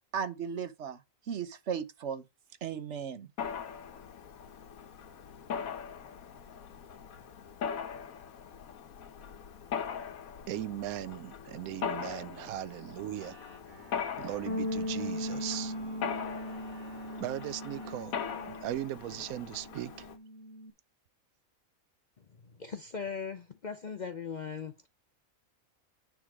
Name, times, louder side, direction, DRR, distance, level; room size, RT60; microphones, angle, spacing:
voice 1, 0.1-1.0 1.3-2.2 2.6-3.3, right 7 dB, 60° right, 1.1 m, -36 dB
Mechanisms, 3.4-20.2, left 7 dB, 80° left, 1.4 m, -41 dB
voice 2, 10.5-13.4 14.2-15.7 17.2-18.1 18.4-20.1, right 13 dB, 90° right, 1.1 m, -38 dB
sound 1, 13.1-18.1, left 2 dB, 35° right, 5.9 m, -52 dB
Bass guitar, 14.5-20.7, left 1 dB, 25° left, 1.3 m, -39 dB
voice 3, 22.2-24.9, left 6 dB, 50° left, 0.5 m, -39 dB
9.3 x 3.8 x 4.8 m
omnidirectional pair, 1.5 m